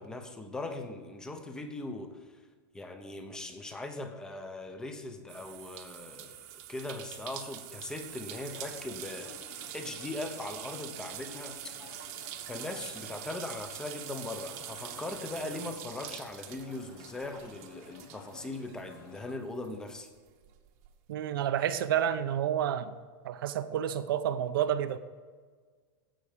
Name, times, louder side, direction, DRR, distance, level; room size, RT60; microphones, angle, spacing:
voice 1, 0.0-2.2 2.7-9.3 9.7-11.7 12.5-20.1, left 2 dB, 5° left, 7 dB, 0.8 m, -40 dB
sound 1, 5.3-19.3 19.6-20.9, right 12 dB, 40° right, 1.0 m, -45 dB
sound 2, 8.3-19.3, left 6 dB, 75° left, 1.1 m, -53 dB
voice 2, 21.1-22.9 23.2-25.0, right 10 dB, 70° right, 9 dB, 0.7 m, -29 dB
15.5 x 5.9 x 5.1 m, 1.5 s
supercardioid pair, 170°, 12 cm